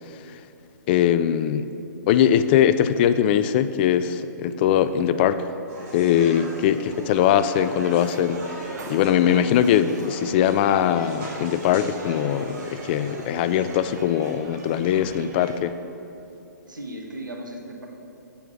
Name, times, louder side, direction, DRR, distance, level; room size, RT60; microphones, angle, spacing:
voice 1, 0.9-1.7 2.1-5.4 5.9-8.4 8.9-15.7, left 9 dB, 35° left, 12 dB, 0.3 m, -21 dB
sound 1, 5.7-13.9, right 2 dB, 40° right, 2.2 m, -39 dB
sound 2, 7.3-15.6, right 3 dB, 65° right, 1.2 m, -43 dB
voice 2, 16.7-17.9, right 1 dB, 85° right, 1 dB, 1.4 m, -36 dB
8.0 x 7.0 x 6.1 m, 2.9 s
figure-of-eight pair, 130°, 10 cm